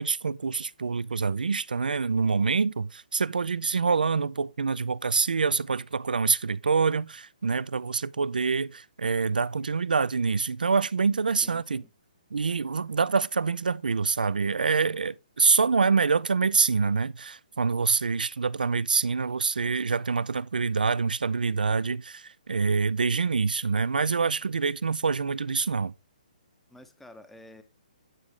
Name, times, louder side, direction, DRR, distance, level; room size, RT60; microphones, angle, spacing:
voice 1, 0.0-11.8 12.3-25.9, right 5 dB, 85° right, 0.4 m, -26 dB
voice 2, 11.4-11.9 26.7-27.6, left 1 dB, 5° left, 0.8 m, -50 dB
10.0 x 4.9 x 3.7 m
hypercardioid pair, 140°, 5 cm